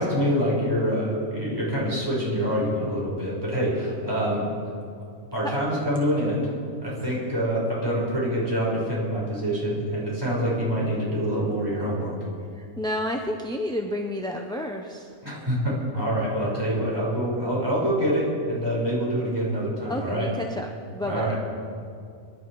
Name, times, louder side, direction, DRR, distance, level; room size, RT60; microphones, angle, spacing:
voice 1, 0.0-4.4 5.3-6.5 6.8-12.1 15.2-20.3 21.0-21.4, equal, 15° right, -6 dB, 5.5 m, -26 dB
voice 2, 12.6-15.1 19.9-21.4, left 1 dB, 5° left, 2 dB, 0.7 m, -30 dB
26.5 x 11.5 x 4.8 m, 2.3 s
omnidirectional pair, 1.4 m